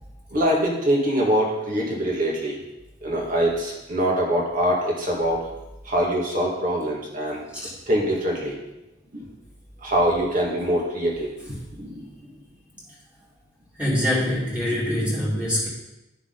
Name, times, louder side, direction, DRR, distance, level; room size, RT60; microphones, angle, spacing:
voice 1, 0.3-2.6 3.0-5.5 5.9-7.4 7.9-8.5 9.1-9.2 9.8-12.1 13.9-14.0 14.9-15.0, equal, 45° right, -2 dB, 2.1 m, -24 dB
voice 2, 13.8-15.7, left 1 dB, 5° right, -7 dB, 2.3 m, -24 dB
11.0 x 6.7 x 4.0 m, 0.97 s
head